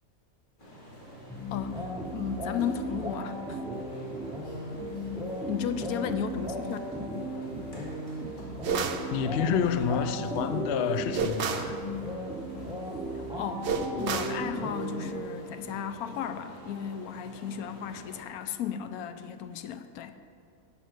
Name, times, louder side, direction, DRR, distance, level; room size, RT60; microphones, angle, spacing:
sound 1, 0.6-18.2, equal, 35° left, 2.4 m, -47 dB
sound 2, 1.3-15.6, right 1 dB, 5° right, 0.8 m, -36 dB
voice 1, 1.5-1.8 2.1-3.6 5.5-6.8 13.3-20.2, left 8 dB, 90° left, 10 dB, 1.1 m, -35 dB
sound 3, 8.6-9.1 11.1-11.7 13.6-14.4, right 6 dB, 60° right, 0.8 m, -30 dB
voice 2, 9.1-11.8, left 8 dB, 65° left, 11 dB, 0.7 m, -28 dB
11.0 x 5.8 x 6.2 m, 2.4 s
omnidirectional pair, 1.5 m